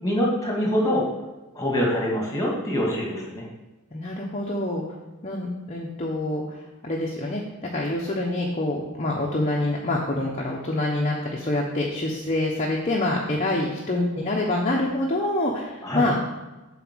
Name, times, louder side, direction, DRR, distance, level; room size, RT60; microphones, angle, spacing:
voice 1, 0.0-1.1 1.6-3.5 15.8-16.1, equal, 15° left, -2 dB, 2.1 m, -24 dB
voice 2, 3.9-4.8 5.2-6.4 6.8-16.2, left 1 dB, 30° left, -2 dB, 1.0 m, -26 dB
7.7 x 4.2 x 6.2 m, 1.1 s
head